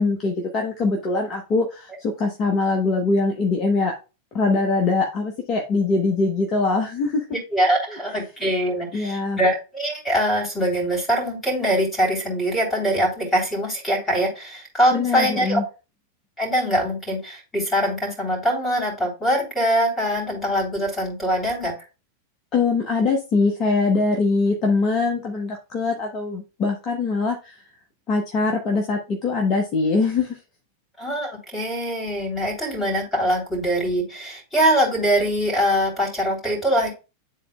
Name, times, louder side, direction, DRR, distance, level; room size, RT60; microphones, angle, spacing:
voice 1, 0.0-3.9 4.3-7.2 8.9-9.4 14.9-15.6 22.5-27.6 28.1-30.4, left 3 dB, 35° left, 2 dB, 1.1 m, -22 dB
voice 2, 7.5-15.6 16.4-21.7 31.0-36.9, equal, 10° left, -2 dB, 3.3 m, -23 dB
10.5 x 4.0 x 2.3 m, 0.31 s
figure-of-eight pair, 90°, 0 cm